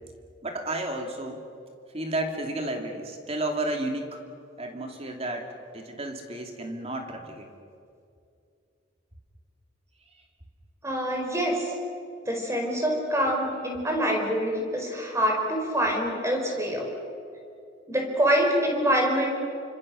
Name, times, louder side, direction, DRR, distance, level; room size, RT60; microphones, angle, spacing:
voice 1, 0.4-1.4 1.9-4.2 4.6-5.5 5.7-7.5, right 1 dB, 30° right, 3 dB, 2.7 m, -32 dB
voice 2, 10.8-11.7 12.3-16.9 17.9-19.4, equal, 15° right, 1 dB, 5.0 m, -25 dB
29.0 x 25.5 x 6.6 m, 2.5 s
head